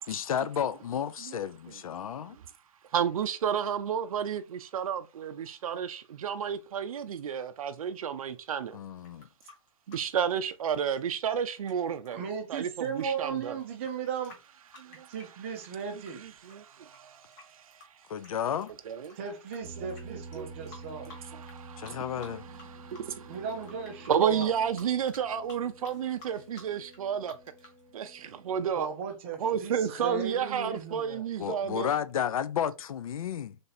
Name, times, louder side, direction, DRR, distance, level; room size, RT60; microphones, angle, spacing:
voice 1, 0.1-2.4 8.7-9.3 18.1-18.7 21.8-22.5 31.4-33.6, left 9 dB, 85° left, 0.4 m, -32 dB
voice 2, 2.9-8.8 9.9-12.2 12.5-13.6 14.7-15.1 16.2-17.8 18.9-19.2 19.8-22.0 22.5-23.4 24.1-27.4 27.9-28.9 29.4-31.9, right 8 dB, 85° right, 0.4 m, -32 dB
sound 1, 9.0-16.1 16.4-19.6 19.9-20.0 20.3-21.6 21.8-22.7 22.9-27.8, left 2 dB, 15° left, 0.6 m, -52 dB
voice 3, 12.1-14.4 15.1-16.2 19.2-21.1 23.3-24.5 28.8-31.2, right 6 dB, 20° right, 0.5 m, -36 dB
sound 2, 19.6-28.7, right 3 dB, 65° left, 2.2 m, -49 dB
3.3 x 2.6 x 4.0 m
hypercardioid pair, 170°, 18 cm